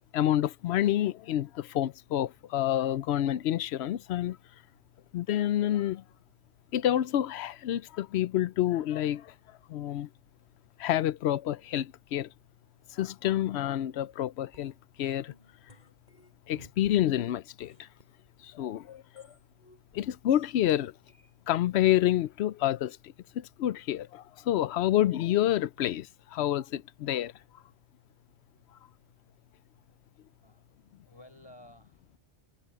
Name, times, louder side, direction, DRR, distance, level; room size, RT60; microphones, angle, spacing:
voice 1, 0.1-4.4 5.1-6.0 6.7-9.3 9.7-10.1 10.8-12.3 12.9-14.7 15.0-15.3 16.5-17.7 18.4-19.2 19.9-20.9 21.5-23.0 23.3-27.3, left 12 dB, 75° left, 0.8 m, -28 dB
sound 1, 14.5-17.2 17.6-18.2 18.8-21.5, left 1 dB, 40° left, 7.3 m, -58 dB
voice 2, 31.0-32.2, left 1 dB, 20° left, 4.8 m, -54 dB
omnidirectional pair, 1.2 m